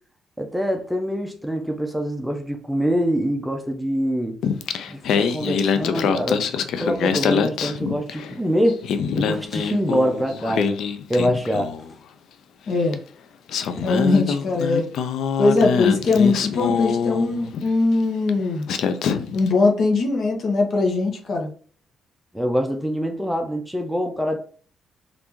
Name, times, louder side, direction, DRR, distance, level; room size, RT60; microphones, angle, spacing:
voice 1, 0.4-4.4 4.9-6.4 6.8-8.8 9.1-10.8 11.1-11.7 22.3-24.4, equal, 5° right, 0.5 m, -24 dB
Singing, 4.4-8.4 8.7-11.9 12.9-13.0 13.5-17.7 18.3-18.4 18.7-19.5, left 6 dB, 75° left, 0.3 m, -24 dB
voice 2, 12.7-13.0 13.8-14.9 15.4-18.6 19.3-21.5, left 3 dB, 55° left, 0.9 m, -20 dB
3.4 x 2.5 x 2.9 m
cardioid pair, 90°, 0 cm